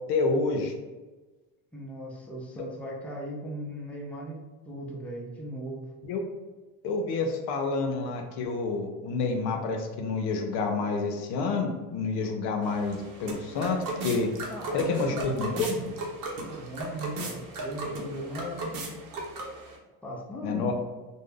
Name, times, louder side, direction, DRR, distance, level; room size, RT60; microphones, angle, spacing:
voice 1, 0.1-0.7 6.0-6.2 6.8-14.3 14.7-15.9 20.4-20.7, left 3 dB, 60° left, 4 dB, 0.6 m, -28 dB
voice 2, 1.7-5.8 14.5-15.6 16.4-18.9 20.0-20.7, equal, 5° left, -3 dB, 0.5 m, -38 dB
sound 1, 12.6-19.8, right 2 dB, 50° right, 0.8 m, -37 dB
2.5 x 2.1 x 3.4 m, 1.2 s
supercardioid pair, 90°, 44 cm